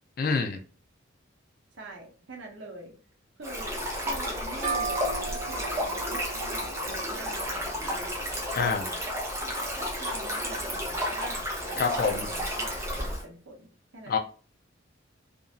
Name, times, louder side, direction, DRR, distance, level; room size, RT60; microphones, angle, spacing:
voice 1, 0.2-0.6 8.5-8.8 11.8-12.3 14.1-14.2, left 5 dB, 45° left, 0.4 m, -26 dB
voice 2, 1.7-2.9 3.4-3.7 4.0-8.1 8.6-9.0 9.9-14.2, right 2 dB, 70° right, 0.8 m, -43 dB
Stream, 3.4-13.2, equal, 15° right, 0.7 m, -32 dB
sound 1, 4.6-8.2, right 5 dB, 45° right, 1.1 m, -37 dB
2.8 x 2.5 x 2.4 m
head